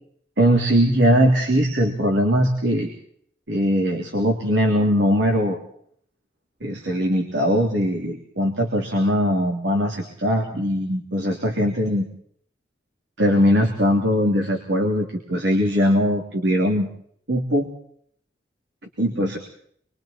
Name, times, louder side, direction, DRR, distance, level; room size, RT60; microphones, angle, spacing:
voice 1, 0.4-2.9 3.5-5.6 6.6-12.1 13.2-16.9 17.3-17.7 19.0-19.4, equal, 75° right, 1 dB, 3.2 m, -20 dB
27.0 x 23.0 x 4.4 m, 0.64 s
head